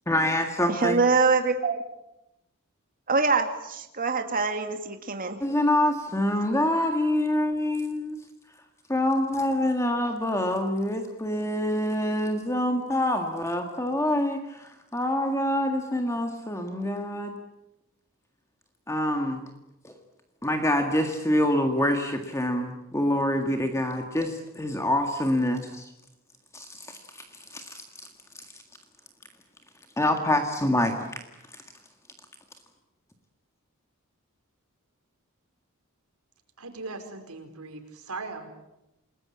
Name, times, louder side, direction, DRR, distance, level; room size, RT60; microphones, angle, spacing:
voice 1, 0.1-1.0 5.4-8.2 8.9-17.3 18.9-19.4 19.8-19.9 20.4-25.9 26.5-27.2 27.5-27.8 30.0-31.1 31.5-31.6, left 1 dB, 15° left, 4 dB, 1.8 m, -26 dB
voice 2, 0.7-1.8 3.1-5.4, right 4 dB, 40° right, 6 dB, 2.2 m, -24 dB
voice 3, 36.6-38.5, right 3 dB, 90° right, 5 dB, 4.8 m, -39 dB
29.0 x 20.0 x 8.6 m, 0.90 s
head